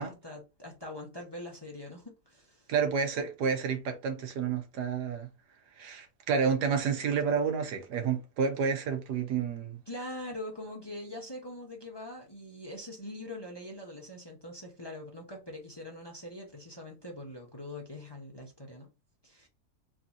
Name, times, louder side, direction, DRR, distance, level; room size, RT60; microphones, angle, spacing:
voice 1, 0.0-2.7 9.9-18.9 19.2-19.5, left 1 dB, 20° left, 0.8 m, -43 dB
voice 2, 2.7-5.3 5.8-9.8, right 6 dB, 90° right, 1.5 m, -30 dB
3.5 x 2.9 x 3.7 m
omnidirectional pair, 1.7 m